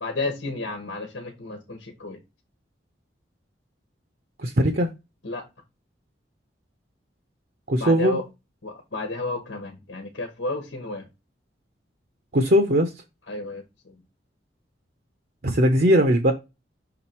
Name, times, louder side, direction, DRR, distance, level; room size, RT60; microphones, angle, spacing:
voice 1, 0.0-2.2 5.2-5.4 7.8-8.2 8.6-11.0 13.3-13.9, left 2 dB, 90° left, 1.3 m, -32 dB
voice 2, 4.4-4.9 7.7-8.2 12.3-12.9 15.4-16.3, equal, 55° right, 0.7 m, -19 dB
6.0 x 3.8 x 4.4 m
head